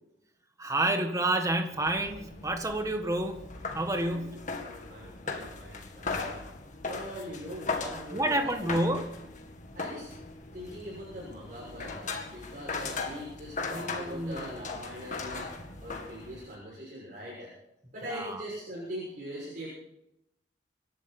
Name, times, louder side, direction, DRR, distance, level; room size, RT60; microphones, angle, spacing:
voice 1, 0.6-4.5 8.1-9.4 13.7-14.7 18.1-18.4, right 1 dB, 15° right, 5 dB, 1.7 m, -30 dB
sound 1, 1.7-16.6, left 4 dB, 40° left, 2.0 m, -39 dB
voice 2, 3.9-6.4 6.8-8.6 9.7-10.1 10.5-15.5 15.8-17.5 17.9-19.7, equal, 45° right, -7 dB, 6.7 m, -42 dB
26.5 x 12.0 x 4.4 m, 0.83 s
head